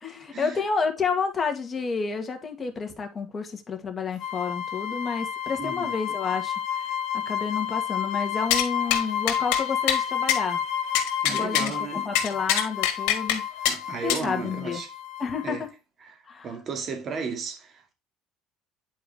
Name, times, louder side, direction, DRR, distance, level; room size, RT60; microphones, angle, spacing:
voice 1, 0.0-10.6 11.3-13.4 14.0-14.8 15.2-15.7 16.3-16.5, left 5 dB, 25° left, 1.9 m, -30 dB
sound 1, 4.2-15.6, left 9 dB, 65° left, 1.6 m, -31 dB
voice 2, 5.6-5.9 11.2-12.1 13.7-14.9 15.4-15.6 16.0-17.9, right 5 dB, 45° right, 2.3 m, -34 dB
sound 2, 8.5-8.7 8.9-9.0 9.3-9.6 9.9-10.0 10.3-10.4 10.9-11.7 12.1-13.4 13.6-13.8 14.1-14.2, left 10 dB, 90° left, 1.7 m, -24 dB
9.3 x 4.7 x 3.6 m
cardioid pair, 110°, 0 cm